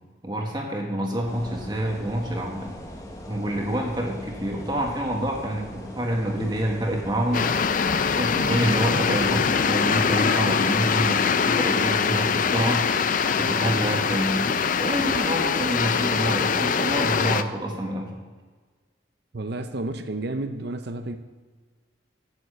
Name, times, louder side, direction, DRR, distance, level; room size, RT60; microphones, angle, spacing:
voice 1, 0.2-2.7 3.3-7.5 8.1-12.8 13.3-14.5 14.8-18.2, right 1 dB, 20° right, 0 dB, 1.3 m, -27 dB
sound 1, 1.2-10.1, equal, 15° left, 1.0 m, -40 dB
sound 2, 7.3-17.4, left 6 dB, 40° left, 0.4 m, -23 dB
voice 2, 19.3-21.2, right 2 dB, 55° right, 8 dB, 0.7 m, -31 dB
8.2 x 7.7 x 7.6 m, 1.4 s
head